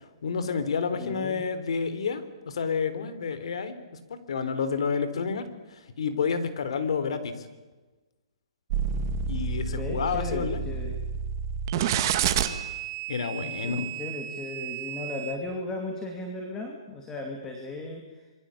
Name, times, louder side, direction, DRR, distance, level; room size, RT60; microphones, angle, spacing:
voice 1, 0.2-3.8 4.1-7.3 9.3-10.6 13.1-13.9, left 5 dB, 65° left, 12 dB, 3.8 m, -29 dB
voice 2, 1.0-1.4 9.7-11.0 13.4-18.3, left 2 dB, 10° left, 3 dB, 2.5 m, -36 dB
sound 1, 8.7-15.3, right 7 dB, 35° right, 2.0 m, -30 dB
27.0 x 23.0 x 8.5 m, 1.2 s
hypercardioid pair, 165°, 3 cm